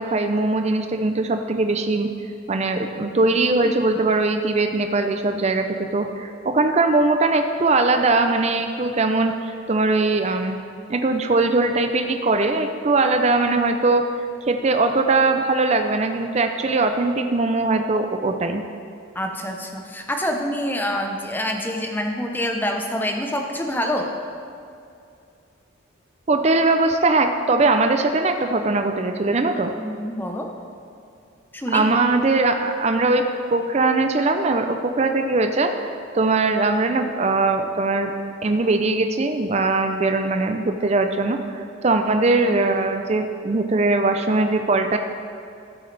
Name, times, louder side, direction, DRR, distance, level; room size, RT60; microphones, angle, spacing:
voice 1, 0.0-2.1 2.5-10.6 10.9-14.0 14.5-18.6 26.3-29.7 31.7-38.1 38.4-45.0, right 3 dB, 30° right, 6 dB, 0.4 m, -21 dB
voice 2, 3.6-4.1 19.1-24.1 29.7-30.5 31.5-31.9, equal, 10° left, 2 dB, 0.7 m, -26 dB
13.5 x 7.9 x 3.3 m, 2.5 s
head